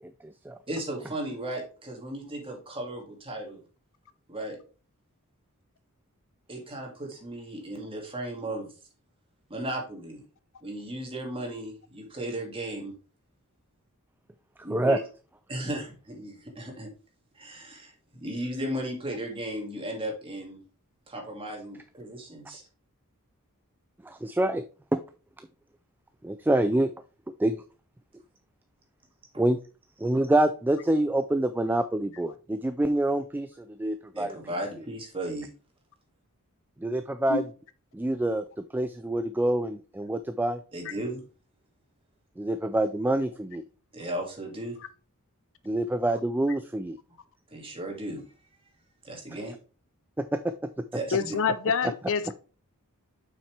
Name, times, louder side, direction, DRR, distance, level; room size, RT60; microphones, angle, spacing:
voice 1, 0.0-0.6 14.7-15.0 24.0-24.6 24.9-25.0 26.2-26.9 27.4-27.6 29.4-29.6 30.0-34.4 36.8-37.4 37.9-40.6 42.4-43.6 45.7-47.0 50.2-50.7 51.8-51.9 52.3-52.4, right 1 dB, 10° right, 0.3 m, -26 dB
voice 2, 0.7-3.6 4.3-4.6 6.5-8.7 9.5-10.2 10.6-12.9 14.6-15.0 15.5-16.9 17.3-20.6 21.1-22.6 29.3-29.4 34.1-35.5 40.7-41.2 43.9-44.8 47.5-48.3 49.0-49.5 50.9-51.4, right 1 dB, 25° right, 2.2 m, -35 dB
voice 3, 51.1-52.3, left 6 dB, 60° left, 0.6 m, -26 dB
7.1 x 5.9 x 3.3 m
head